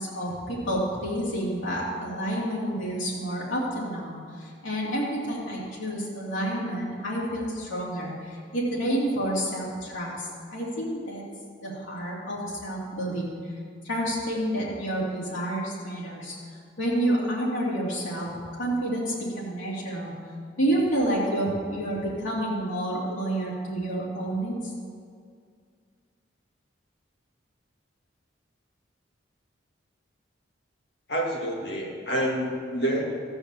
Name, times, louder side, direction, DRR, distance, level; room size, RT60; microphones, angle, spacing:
voice 1, 0.0-11.2 11.6-13.3 13.8-16.3 16.8-18.3 18.6-20.1 20.6-24.7, right 1 dB, 85° left, -6 dB, 2.8 m, -29 dB
voice 2, 31.1-33.0, right 1 dB, 55° left, -2 dB, 2.2 m, -28 dB
14.5 x 5.5 x 7.2 m, 2.1 s
head